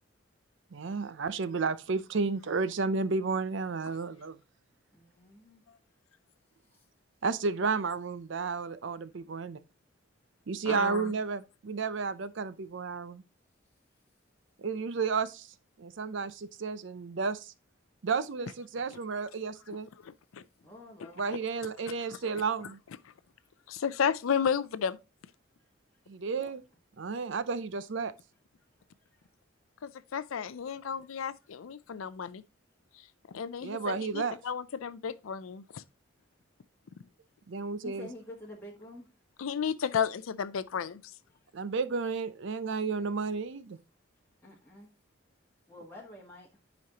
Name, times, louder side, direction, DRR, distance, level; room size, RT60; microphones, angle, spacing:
voice 1, 0.7-4.4 7.2-9.6 10.5-13.2 14.6-15.5 15.8-17.5 18.0-19.9 21.2-22.8 26.1-26.6 27.0-28.1 33.6-34.4 37.5-38.1 41.5-43.8, right 4 dB, 65° right, 0.5 m, -32 dB
voice 2, 4.9-5.6 6.7-6.8 20.6-21.2 23.4-23.5 26.3-26.5 29.1-29.2 37.8-39.1 44.4-44.9 45.7-46.5, left 1 dB, 10° left, 1.2 m, -48 dB
voice 3, 10.6-11.1 20.0-20.4 21.0-21.1 23.7-25.0 29.8-32.4 33.3-35.8 39.4-41.0, left 7 dB, 85° left, 0.5 m, -33 dB
9.4 x 5.2 x 2.8 m
head